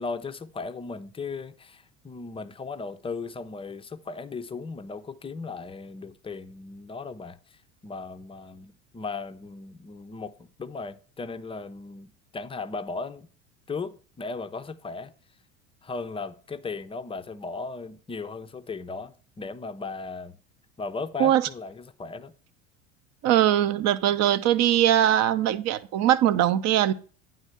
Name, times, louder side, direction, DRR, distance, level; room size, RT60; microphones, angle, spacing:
voice 1, 0.0-13.3 13.7-15.1 15.8-20.4 20.8-22.3, left 4 dB, 15° left, 0.5 m, -37 dB
voice 2, 23.2-26.9, right 11 dB, 40° right, 0.7 m, -21 dB
9.8 x 3.7 x 7.0 m
figure-of-eight pair, 70°, 40 cm